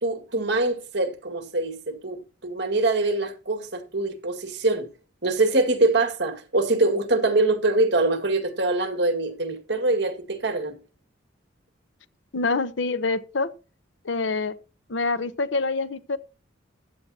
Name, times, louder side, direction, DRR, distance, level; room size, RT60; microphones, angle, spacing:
voice 1, 0.0-4.9 5.2-10.8, right 2 dB, 60° right, 2.0 m, -24 dB
voice 2, 12.3-13.5 14.0-14.6 14.9-16.2, left 3 dB, 75° left, 0.9 m, -26 dB
15.0 x 9.4 x 2.8 m
head